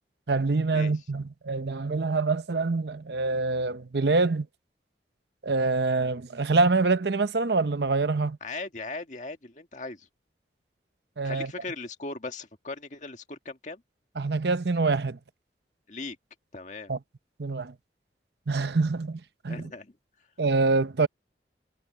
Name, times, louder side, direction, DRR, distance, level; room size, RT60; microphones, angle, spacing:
voice 1, 0.3-4.5 5.4-8.4 11.2-11.5 14.2-15.2 16.9-17.0 17.4-17.7 18.5-19.7 20.4-21.1, right 3 dB, 70° right, 0.8 m, -25 dB
voice 2, 8.4-10.1 11.2-13.8 15.9-16.2 16.5-16.9 19.5-19.9, left 3 dB, 45° left, 1.9 m, -38 dB
head